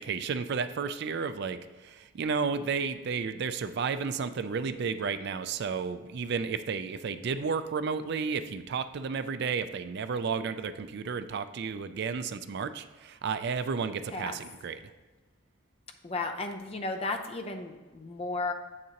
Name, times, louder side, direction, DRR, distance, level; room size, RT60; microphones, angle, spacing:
voice 1, 0.0-14.8, right 5 dB, 55° right, 11 dB, 0.4 m, -32 dB
voice 2, 14.1-14.4 16.0-18.5, left 3 dB, 30° left, 5 dB, 0.5 m, -34 dB
7.4 x 6.6 x 2.9 m, 1.2 s
head